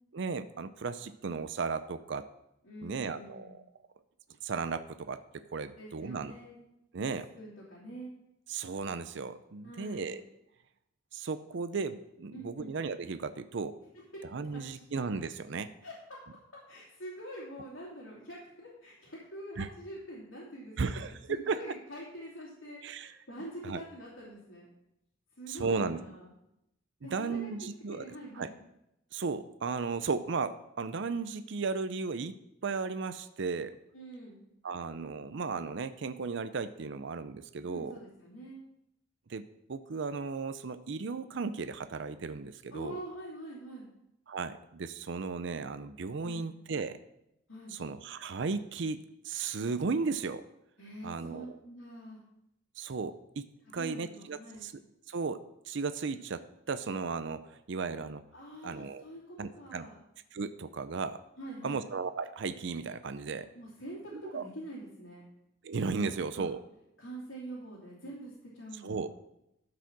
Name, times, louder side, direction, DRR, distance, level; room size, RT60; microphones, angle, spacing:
voice 1, 0.1-2.2 2.8-3.6 4.4-6.3 6.9-7.3 8.5-10.2 11.1-13.8 14.3-15.7 19.6-19.7 20.8-21.6 22.8-23.1 23.6-23.8 25.5-26.0 27.0-28.0 28.3-28.5 29.1-32.4 32.6-33.8 34.6-37.9 39.3-39.4 39.7-43.0 44.3-47.0 47.7-50.4 51.0-51.5 52.8-54.7 55.1-55.4 55.7-58.2 58.6-59.0 59.4-59.9 60.3-61.2 61.6-63.5 64.1-64.4 65.6-66.6 68.8-69.1, right 4 dB, 65° right, 11 dB, 0.5 m, -35 dB
voice 2, 2.6-3.5 5.8-6.6 7.3-8.1 9.6-10.2 12.3-12.7 14.7-14.8 15.8-16.2 16.7-24.7 25.4-26.3 27.0-27.5 27.9-28.5 33.9-34.4 37.7-38.6 42.7-43.9 46.2-46.4 47.5-47.8 50.8-52.2 53.7-54.7 58.3-60.0 61.4-61.8 63.5-65.2 66.0-66.5 67.0-69.0, right 1 dB, 90° left, -7 dB, 2.8 m, -45 dB
12.5 x 4.9 x 6.0 m, 0.83 s
head